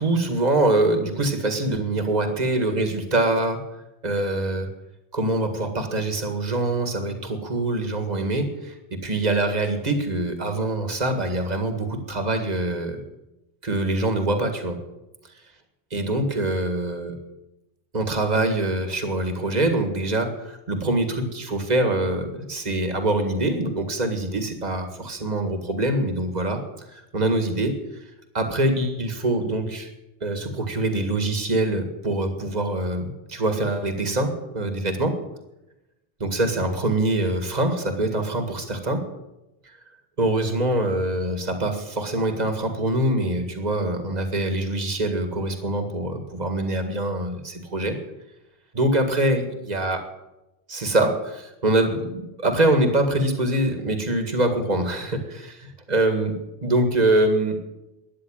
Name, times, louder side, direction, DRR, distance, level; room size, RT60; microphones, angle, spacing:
voice 1, 0.0-3.6 4.0-4.7 5.1-13.0 13.6-14.8 15.9-17.2 17.9-26.6 26.9-27.8 28.3-29.9 30.2-35.1 36.2-39.0 39.7-39.8 40.2-48.0 48.7-50.0 50.7-56.4 56.6-57.6, right 2 dB, 40° right, 5 dB, 2.0 m, -24 dB
13.5 x 10.0 x 8.9 m, 0.96 s
omnidirectional pair, 1.1 m